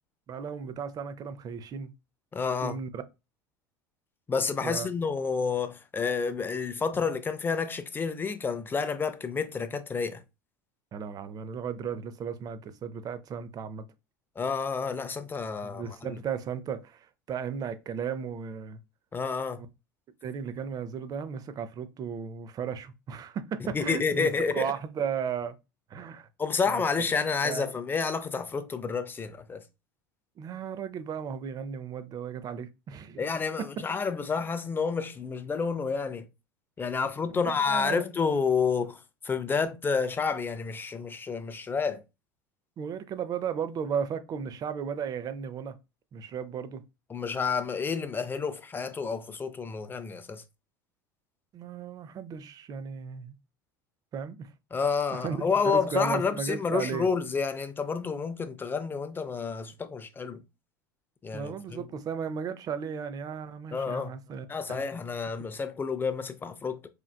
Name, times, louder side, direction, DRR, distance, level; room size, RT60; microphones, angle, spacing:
voice 1, 0.3-1.9 2.6-3.0 4.6-4.9 10.9-13.8 15.6-18.8 20.2-25.5 25.9-26.3 26.7-26.8 27.4-27.6 30.4-33.3 37.3-37.4 37.7-38.0 42.8-45.7 46.1-46.8 51.5-53.3 54.1-54.5 55.1-57.1 61.3-64.8, right 7 dB, 35° right, 0.5 m, -35 dB
voice 2, 2.3-2.8 4.3-10.2 14.4-16.2 19.1-19.6 23.6-24.7 26.4-29.6 33.2-36.3 36.8-39.0 39.2-42.0 47.1-50.4 54.7-60.4 61.2-61.8 63.7-64.2 64.5-66.9, left 5 dB, 20° left, 0.5 m, -29 dB
4.4 x 2.4 x 2.2 m
hypercardioid pair, 75°, 11 cm